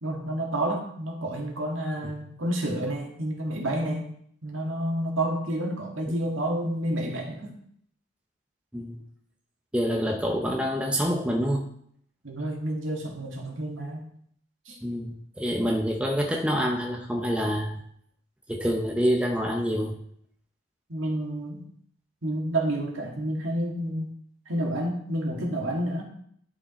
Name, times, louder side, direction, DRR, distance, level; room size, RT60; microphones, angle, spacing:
voice 1, 0.0-4.1 4.4-7.6 12.2-14.0 14.7-14.8 20.9-21.6 22.2-24.1 24.5-26.0, right 1 dB, 65° right, 0 dB, 1.9 m, -29 dB
voice 2, 9.7-11.7 14.8-17.8 18.5-20.0, equal, 5° right, 1 dB, 0.7 m, -27 dB
11.0 x 5.0 x 4.3 m, 0.67 s
head